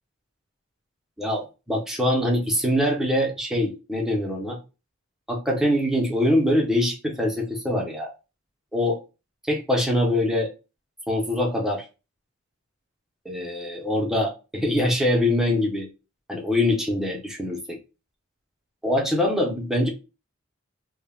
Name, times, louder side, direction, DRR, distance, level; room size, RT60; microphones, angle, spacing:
voice 1, 1.2-4.6 5.3-8.1 8.7-9.0 9.5-10.5 11.1-11.8 13.3-15.9 16.3-17.8 18.8-19.9, left 1 dB, ahead, 0 dB, 0.5 m, -23 dB
2.2 x 2.1 x 3.4 m, 0.29 s
head